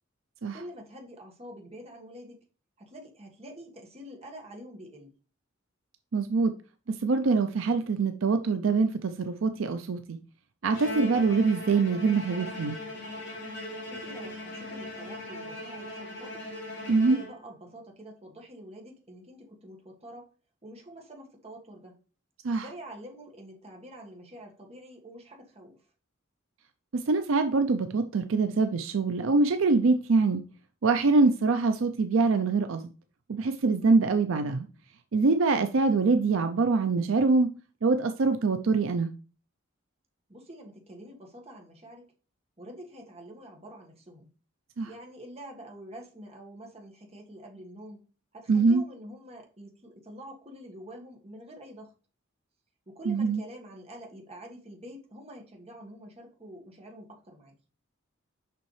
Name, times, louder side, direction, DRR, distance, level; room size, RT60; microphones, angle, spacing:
voice 1, 0.5-2.4 2.8-5.1 13.8-16.4 16.9-20.3 20.6-21.9 22.6-25.8 40.3-42.1 42.6-44.3 44.8-48.0 48.3-51.9 52.9-57.5, equal, 30° right, 1.6 m, -46 dB
voice 2, 6.1-6.5 6.9-10.2 10.6-12.8 16.9-17.2 22.4-22.7 26.9-30.4 30.8-32.8 33.3-34.7 35.1-37.5 37.8-39.1 44.8-44.9 48.5-48.8 53.1-53.4, right 4 dB, 70° right, 0.5 m, -24 dB
Bowed string instrument, 10.7-17.7, left 1 dB, 60° left, 2.9 m, -39 dB
6.7 x 5.5 x 3.2 m
head